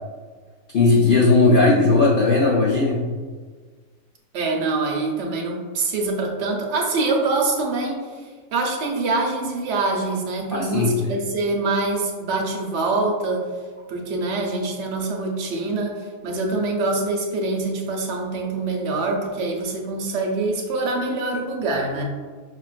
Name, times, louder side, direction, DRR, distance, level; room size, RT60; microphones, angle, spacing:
voice 1, 0.7-3.0 10.5-11.1, left 3 dB, 70° left, -5 dB, 0.5 m, -17 dB
voice 2, 4.3-8.2 8.5-13.5 13.9-22.0, right 3 dB, 60° right, 1 dB, 0.8 m, -25 dB
5.6 x 2.4 x 2.4 m, 1.5 s
omnidirectional pair, 1.5 m